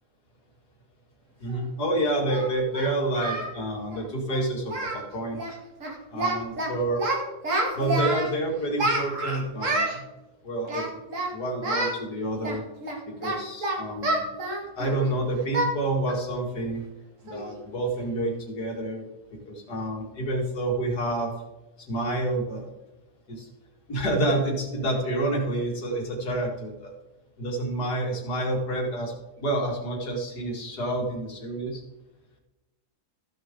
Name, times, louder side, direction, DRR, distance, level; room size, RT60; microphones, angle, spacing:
voice 1, 1.4-5.4 6.1-7.1 7.7-9.9 10.4-11.0 11.3-12.6 13.1-14.2 14.8-16.8 17.2-19.1 19.5-21.3 21.9-22.7 23.4-23.5 23.9-26.9 27.4-31.8, right 1 dB, 75° left, 0 dB, 2.6 m, -28 dB
Singing, 1.5-1.6 2.3-3.5 3.8-4.0 4.3-4.4 4.7-5.1 5.3-5.5 5.8-6.7 7.0-8.3 8.8-10.0 10.7-11.3 11.6-12.0 12.4-15.1 15.5-15.7 16.1-16.3 16.7-16.8 17.3-17.5, right 2 dB, 50° right, 2.1 m, -28 dB
14.5 x 6.9 x 3.7 m, 1.0 s
omnidirectional pair, 1.7 m